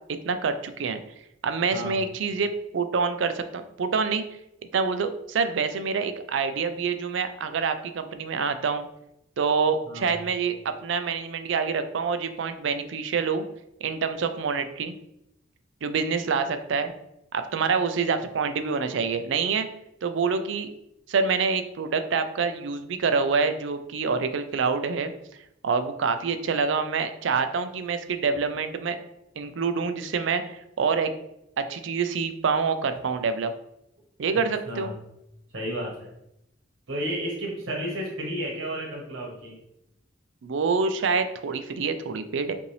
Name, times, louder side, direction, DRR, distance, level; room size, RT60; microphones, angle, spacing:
voice 1, 0.1-1.0 1.4-4.2 4.7-8.9 9.4-13.4 13.8-14.9 15.8-16.9 17.3-19.7 20.0-20.7 21.1-25.1 25.6-29.0 29.4-31.1 31.6-33.5 34.2-34.9 40.4-42.5, right 5 dB, 70° right, 9 dB, 0.4 m, -26 dB
voice 2, 1.7-2.1 9.9-10.3 34.7-35.0 35.5-36.1 36.9-39.5, equal, 90° right, -2 dB, 1.1 m, -32 dB
5.3 x 2.6 x 3.2 m, 0.83 s
head